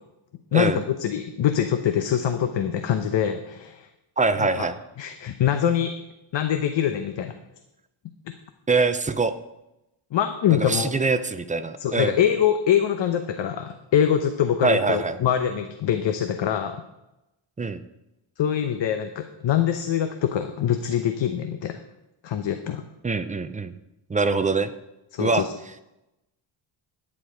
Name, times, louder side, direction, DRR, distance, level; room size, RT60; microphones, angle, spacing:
voice 1, 0.5-3.9 4.4-4.7 5.0-5.9 6.3-7.3 10.1-10.9 11.8-16.8 18.4-21.8 22.2-22.8 25.1-25.5, left 9 dB, 60° left, 7 dB, 0.9 m, -24 dB
voice 2, 4.2-4.8 8.7-9.3 10.5-12.2 14.6-15.2 17.6-17.8 23.0-23.7 24.1-24.7 25.2-25.5, right 3 dB, 15° right, 10 dB, 0.4 m, -23 dB
11.0 x 9.7 x 5.0 m, 0.93 s
wide cardioid pair, 160°, 50 cm